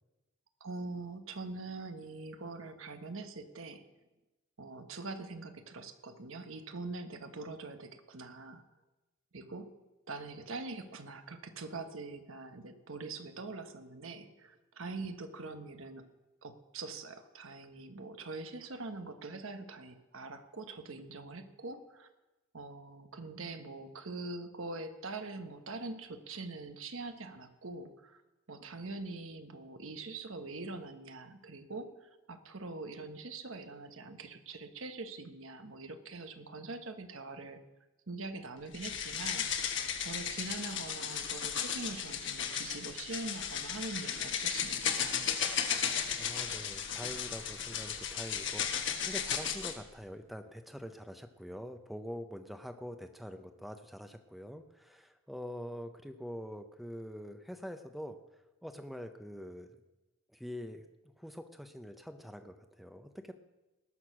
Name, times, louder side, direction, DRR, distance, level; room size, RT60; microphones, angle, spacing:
voice 1, 0.6-3.8 4.6-8.6 9.3-9.7 10.1-16.1 16.4-22.1 22.5-28.2 28.5-37.6 38.1-39.5 40.0-45.5, right 3 dB, 70° right, 7 dB, 1.2 m, -43 dB
sound 1, 38.7-49.8, left 8 dB, 55° left, 1.2 m, -35 dB
voice 2, 46.1-58.2 58.6-59.8 60.3-60.8 61.2-63.3, equal, ahead, 7 dB, 0.7 m, -45 dB
19.5 x 6.6 x 6.1 m, 1.0 s
head